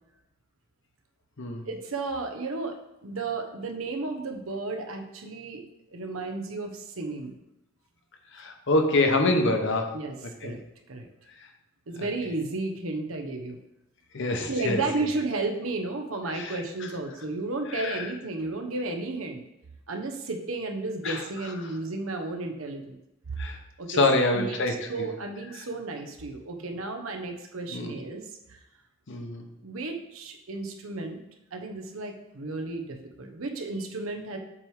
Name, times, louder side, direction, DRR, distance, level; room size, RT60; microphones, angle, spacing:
voice 1, 1.6-5.6 5.9-7.3 9.9-10.6 10.9-11.1 11.9-13.6 14.5-19.4 19.9-23.0 23.8-24.0 24.3-28.6 29.6-31.2 31.5-34.4, right 3 dB, 85° right, 4 dB, 0.9 m, -33 dB
voice 2, 8.3-10.0 10.2-10.5 11.9-12.1 14.1-14.8 16.3-16.9 17.7-18.1 21.0-21.5 23.4-23.6 23.9-25.1 27.7-27.9 29.1-29.5, left 2 dB, 65° left, 4 dB, 0.9 m, -26 dB
7.3 x 3.3 x 4.8 m, 0.91 s
head